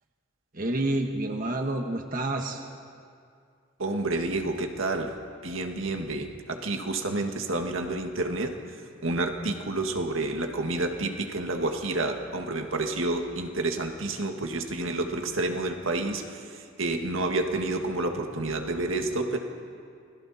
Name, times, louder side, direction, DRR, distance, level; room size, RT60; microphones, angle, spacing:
voice 1, 0.5-2.6, right 2 dB, 40° right, 3 dB, 1.4 m, -29 dB
voice 2, 3.8-5.2 5.4-8.6 9.0-19.4, right 2 dB, 75° right, 4 dB, 1.8 m, -29 dB
29.0 x 21.5 x 4.3 m, 2.3 s
head